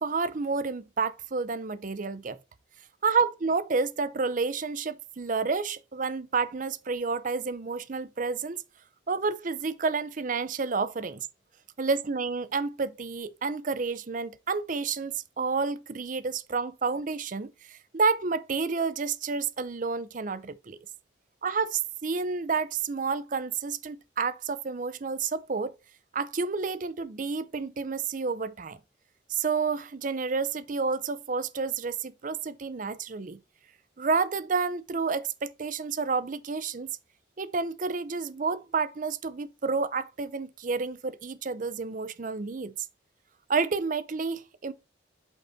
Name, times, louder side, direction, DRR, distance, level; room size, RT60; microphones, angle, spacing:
voice 1, 0.0-2.4 3.0-8.6 9.1-11.3 11.8-20.8 21.4-25.7 26.1-28.8 29.3-33.4 34.0-36.9 37.4-42.7 43.5-44.7, right 4 dB, 45° right, 0.5 m, -30 dB
8.1 x 4.1 x 4.0 m
head